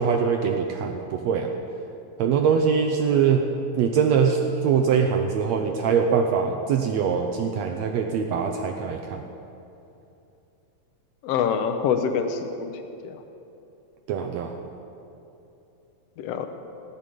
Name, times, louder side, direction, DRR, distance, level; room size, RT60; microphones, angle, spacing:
voice 1, 0.0-1.5 2.2-3.4 3.8-9.2 14.1-14.5, right 6 dB, 80° right, 3 dB, 1.6 m, -23 dB
voice 2, 11.2-12.7 13.0-13.2 16.2-16.5, left 7 dB, 90° left, 7 dB, 1.4 m, -25 dB
18.0 x 7.1 x 9.1 m, 2.8 s
omnidirectional pair, 3.9 m